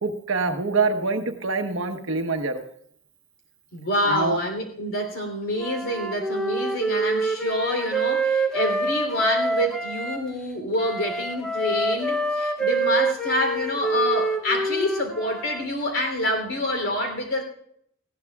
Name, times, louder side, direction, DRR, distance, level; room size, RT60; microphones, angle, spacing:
voice 1, 0.0-2.6 4.0-4.4, right 4 dB, 70° right, 6 dB, 1.2 m, -25 dB
voice 2, 3.7-17.4, left 1 dB, 70° left, 3 dB, 3.3 m, -27 dB
Wind instrument woodwind instrument, 5.6-10.2 10.8-15.6, right 2 dB, 5° left, 0.8 m, -26 dB
19.0 x 15.5 x 2.4 m, 0.69 s
head